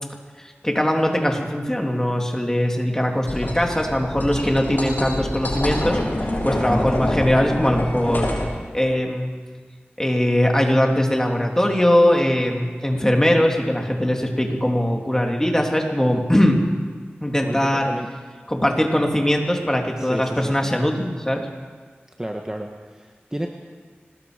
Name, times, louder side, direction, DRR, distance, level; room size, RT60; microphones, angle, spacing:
voice 1, 0.4-6.0 6.4-8.3 8.7-9.3 10.0-16.6 17.2-17.9 18.5-21.5, left 1 dB, 15° left, 1 dB, 3.3 m, -20 dB
sound 1, 3.3-8.5, left 1 dB, 50° left, 7.4 m, -26 dB
voice 2, 17.4-18.1 20.0-20.7 22.2-23.5, right 1 dB, 15° right, 2 dB, 1.6 m, -32 dB
26.0 x 20.0 x 5.3 m, 1.5 s
wide cardioid pair, 55°, 4 cm